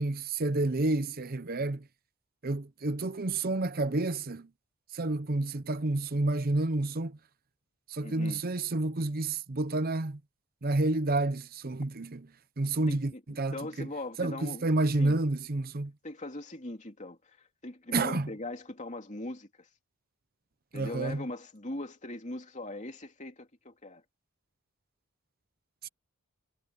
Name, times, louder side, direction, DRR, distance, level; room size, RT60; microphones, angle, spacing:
voice 1, 0.0-1.8 2.4-4.5 4.9-7.2 7.9-10.2 10.6-12.3 12.6-13.1 13.4-13.9 14.2-15.9 17.9-18.3 20.7-21.2 25.8-25.9, right 2 dB, 45° right, 0.8 m, -29 dB
voice 2, 8.0-8.4 12.9-13.2 13.5-14.6 15.0-15.2 16.0-19.7 20.7-24.0, left 1 dB, 35° left, 2.9 m, -40 dB
head